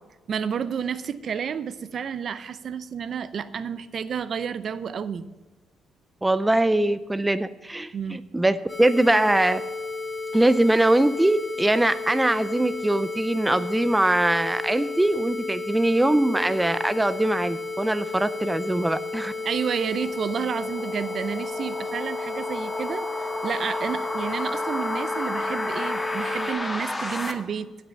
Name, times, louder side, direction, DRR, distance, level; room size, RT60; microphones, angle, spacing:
voice 1, 0.3-5.3 7.9-8.2 19.4-27.7, right 7 dB, 55° right, 14 dB, 0.6 m, -30 dB
voice 2, 6.2-9.6 10.3-19.3, right 1 dB, 10° right, 13 dB, 0.4 m, -22 dB
sound 1, 8.7-26.5, left 3 dB, 40° left, 3.1 m, -33 dB
sound 2, 18.6-27.3, left 2 dB, 15° left, 1.3 m, -33 dB
16.0 x 6.1 x 5.4 m, 1.2 s
cardioid pair, 90°, 0 cm